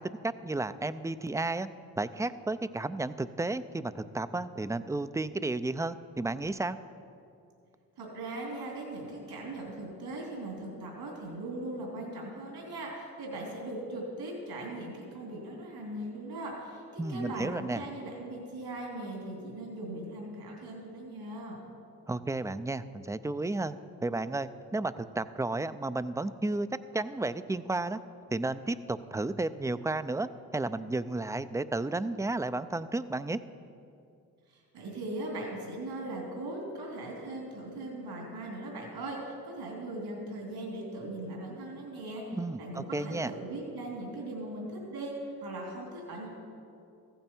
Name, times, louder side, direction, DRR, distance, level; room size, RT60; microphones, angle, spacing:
voice 1, 0.0-1.7 2.0-6.8 17.0-17.8 22.1-26.7 26.9-28.0 28.3-33.4 42.3-43.3, right 2 dB, 10° right, 13 dB, 0.4 m, -33 dB
voice 2, 8.0-21.6 34.5-42.2 42.6-46.3, right 1 dB, 75° right, -2 dB, 3.0 m, -39 dB
15.0 x 9.0 x 4.5 m, 2.5 s
supercardioid pair, 50°, 40 cm